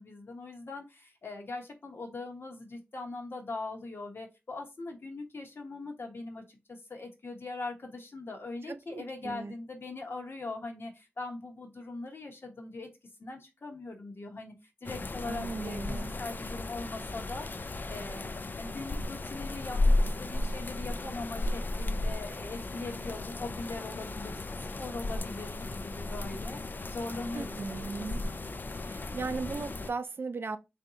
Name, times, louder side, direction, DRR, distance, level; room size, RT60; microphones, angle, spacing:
voice 1, 0.0-6.4 6.7-12.9 13.2-14.5 14.8-18.3 18.6-27.7 28.0-28.4, left 3 dB, 65° left, 1.1 m, -41 dB
voice 2, 8.7-9.5 15.3-16.1 27.3-28.2 28.8-30.6, right 4 dB, 65° right, 0.4 m, -37 dB
sound 1, 14.8-29.9, left 2 dB, 50° left, 0.4 m, -34 dB
3.5 x 2.7 x 3.8 m
cardioid pair, 50°, 4 cm